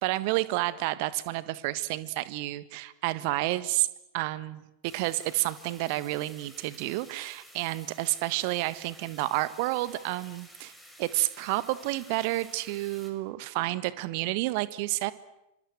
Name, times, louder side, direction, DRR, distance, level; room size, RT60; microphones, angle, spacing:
voice 1, 0.0-3.9 4.1-10.7 11.0-15.1, right 18 dB, 45° right, 16 dB, 1.6 m, -30 dB
sound 1, 4.8-13.1, equal, ahead, 6.0 m, -52 dB
27.5 x 25.5 x 7.8 m, 0.88 s
figure-of-eight pair, 90°, 0 cm